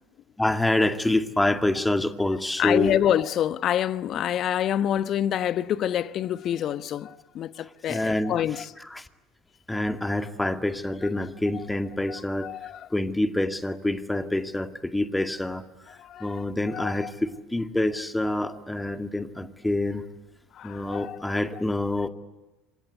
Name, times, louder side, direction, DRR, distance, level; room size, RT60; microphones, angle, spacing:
voice 1, 0.4-3.0 7.9-9.1 9.7-12.5 12.9-15.6 16.2-20.0 20.6-22.1, left 1 dB, 5° left, 2.1 m, -27 dB
voice 2, 2.6-8.7 12.1-12.8 16.0-16.3 16.7-17.1 20.6-21.2, left 10 dB, 45° left, 1.1 m, -27 dB
27.0 x 26.0 x 8.3 m
figure-of-eight pair, 70°, 0 cm